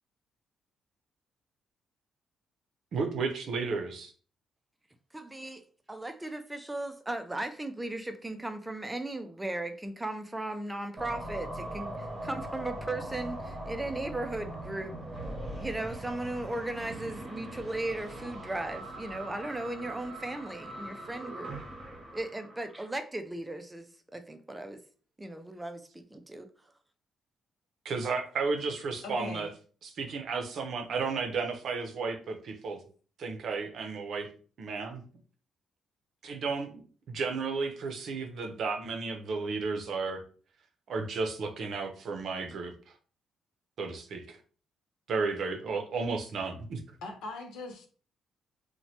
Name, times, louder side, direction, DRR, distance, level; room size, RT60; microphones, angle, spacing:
voice 1, 2.9-4.1 27.8-29.5 30.0-32.8 33.2-34.3 34.6-35.0 36.2-40.2 40.9-42.7 43.8-44.4 45.1-46.8, right 4 dB, 65° right, 0.6 m, -33 dB
voice 2, 5.1-5.6 5.9-14.9 15.6-21.6 22.1-24.8 25.2-26.5, right 2 dB, 10° right, 0.4 m, -37 dB
sound 1, 11.0-23.0, right 1 dB, 35° right, 0.8 m, -41 dB
voice 3, 29.0-29.5 47.0-47.9, left 3 dB, 85° left, 0.6 m, -40 dB
3.1 x 2.1 x 2.7 m
cardioid pair, 90°, 0 cm